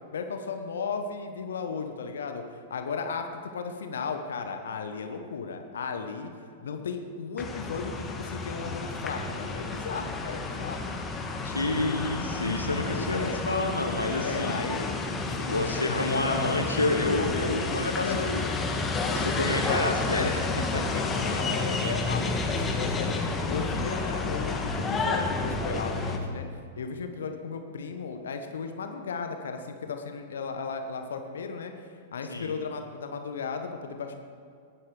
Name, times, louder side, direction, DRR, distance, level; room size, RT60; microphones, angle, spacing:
voice 1, 0.1-2.4 2.7-6.3 6.6-11.0 12.9-13.4 14.2-16.6 18.0-18.2 21.2-23.2 23.4-26.5 26.8-31.7 32.1-34.2, left 5 dB, 65° left, 6 dB, 1.2 m, -35 dB
sound 1, 7.4-26.2, left 3 dB, 15° left, 1.5 m, -30 dB
voice 2, 11.4-14.6 15.4-18.5 19.1-21.2 32.3-32.5, left 2 dB, 80° left, 3 dB, 1.1 m, -29 dB
20.0 x 9.3 x 4.9 m, 2.3 s
figure-of-eight pair, 95°, 0 cm